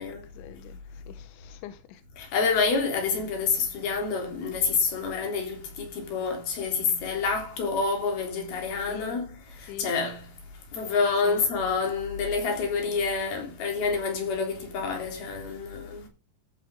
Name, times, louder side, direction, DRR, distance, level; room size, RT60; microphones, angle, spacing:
voice 1, 0.0-2.0 8.9-9.2 9.7-9.9 11.2-11.4, left 10 dB, 90° left, 3.2 m, -43 dB
voice 2, 2.2-9.3 9.6-10.3 10.7-16.1, left 4 dB, 60° left, 5.1 m, -28 dB
14.5 x 8.0 x 3.7 m
omnidirectional pair, 5.2 m